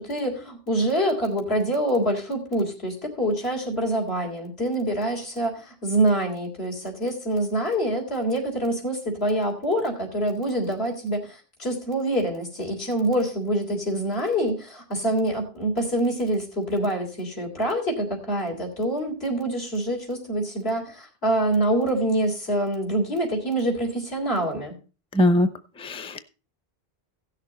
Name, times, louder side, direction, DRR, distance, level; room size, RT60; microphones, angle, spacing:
voice 1, 0.0-24.7, right 1 dB, 80° left, 1 dB, 3.9 m, -26 dB
voice 2, 25.1-25.5 25.8-26.2, left 1 dB, 5° left, 11 dB, 0.6 m, -20 dB
16.0 x 6.7 x 4.3 m, 0.34 s
omnidirectional pair, 1.0 m